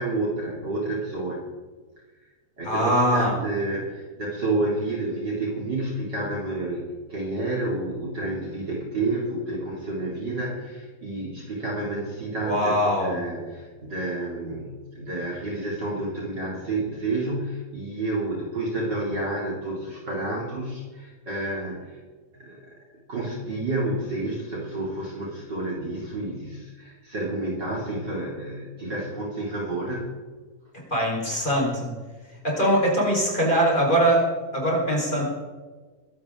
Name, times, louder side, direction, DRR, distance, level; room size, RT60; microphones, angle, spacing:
voice 1, 0.0-1.4 2.6-22.0 22.3-22.7 23.1-30.1, right 2 dB, 35° right, -3 dB, 3.5 m, -30 dB
voice 2, 2.6-3.3 12.5-13.2 30.9-31.9 32.4-34.2 34.5-35.2, right 1 dB, 15° left, -4 dB, 4.8 m, -22 dB
24.0 x 12.5 x 3.9 m, 1.4 s
omnidirectional pair, 3.4 m